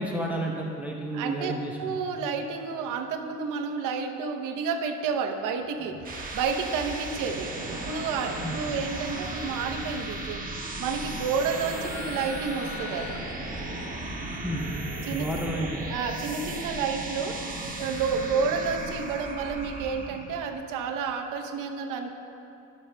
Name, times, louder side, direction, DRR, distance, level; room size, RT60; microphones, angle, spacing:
voice 1, 0.0-1.8 8.4-8.6 14.4-14.8 15.1-15.9, right 1 dB, 5° right, -1 dB, 0.7 m, -31 dB
voice 2, 1.1-1.5 1.8-6.0 6.3-10.4 10.8-13.2 15.0-15.3 15.9-17.4 17.8-22.1, right 5 dB, 70° right, 5 dB, 0.9 m, -30 dB
sound 1, 5.8-20.3, right 2 dB, 25° right, 1.4 m, -36 dB
sound 2, 11.9-13.7, left 12 dB, 60° left, 0.6 m, -43 dB
16.0 x 7.2 x 2.2 m, 2.9 s
supercardioid pair, 90°, 33 cm